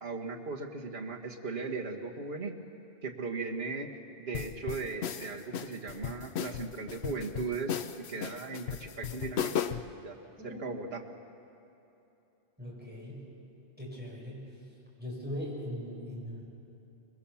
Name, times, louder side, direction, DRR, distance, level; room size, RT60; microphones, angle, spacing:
voice 1, 0.0-2.6 3.0-3.9 4.2-9.5 10.0-10.2 10.4-11.0, right 4 dB, 65° right, -1 dB, 1.9 m, -37 dB
sound 1, 4.3-9.9, left 8 dB, 75° left, 1.0 m, -36 dB
voice 2, 10.4-10.7 12.6-13.3 13.8-14.6 15.0-16.4, equal, 10° right, -5 dB, 7.1 m, -40 dB
25.0 x 22.0 x 7.2 m, 2.9 s
omnidirectional pair, 1.1 m